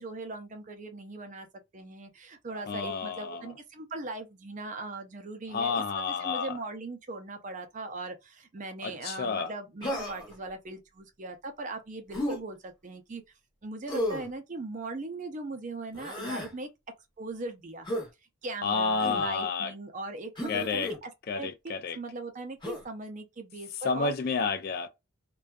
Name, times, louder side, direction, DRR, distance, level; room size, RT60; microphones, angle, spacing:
voice 1, 0.0-1.5 1.7-13.2 13.6-16.7 17.2-17.9 18.4-24.1, right 2 dB, 35° right, 0.5 m, -39 dB
voice 2, 2.7-3.4 5.5-6.5 8.8-9.5 18.6-19.7 20.5-20.9 21.3-22.0 23.8-24.9, left 5 dB, 45° left, 0.3 m, -30 dB
Human voice, 9.8-10.4 12.1-12.4 13.9-14.3 15.9-16.5 17.9-18.1 19.0-19.3 20.4-21.0 22.6-22.9, left 1 dB, 20° left, 0.7 m, -33 dB
2.5 x 2.2 x 2.2 m
head